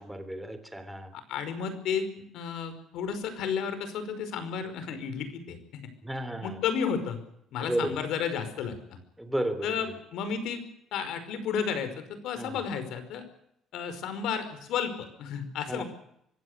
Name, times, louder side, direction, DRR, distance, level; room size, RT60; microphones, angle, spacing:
voice 1, 0.0-1.1 6.0-6.6 7.6-8.0 9.2-9.7 12.4-12.5 15.7-15.8, right 1 dB, 5° right, 9 dB, 3.2 m, -32 dB
voice 2, 1.1-5.8 6.4-7.2 7.5-9.0 9.6-10.7 10.9-13.2 13.7-15.8, left 7 dB, 70° left, 11 dB, 5.2 m, -32 dB
25.0 x 16.5 x 8.3 m, 0.75 s
cardioid pair, 155°, 0 cm